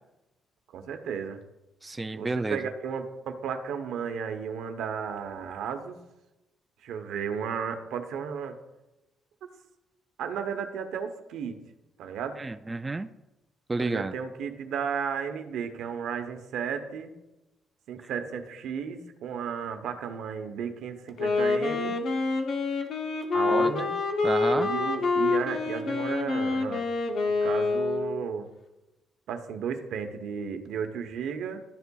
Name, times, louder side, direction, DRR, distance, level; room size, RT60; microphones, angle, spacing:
voice 1, 0.7-1.4 2.1-6.0 6.8-8.6 10.2-11.6 12.0-12.4 13.8-17.1 17.9-22.0 23.3-23.9 24.6-26.9 27.3-28.5 29.3-31.6, right 7 dB, 80° right, 7 dB, 0.8 m, -34 dB
voice 2, 1.8-2.6 12.4-13.1 13.7-14.1 18.0-18.1 23.5-23.7 24.2-24.7, right 3 dB, 20° right, 9 dB, 0.3 m, -30 dB
Wind instrument woodwind instrument, 21.1-28.3, left 3 dB, 65° left, 0.8 m, -27 dB
12.0 x 6.9 x 2.3 m, 0.98 s
cardioid pair, 90°, 0 cm